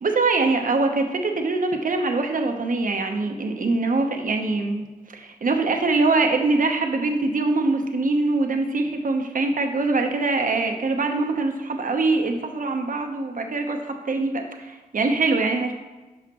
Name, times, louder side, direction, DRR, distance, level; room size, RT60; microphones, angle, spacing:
voice 1, 0.0-4.8 5.1-15.7, right 3 dB, 60° right, 4 dB, 1.0 m, -23 dB
12.5 x 4.9 x 3.0 m, 1.2 s
cardioid pair, 55°, 16 cm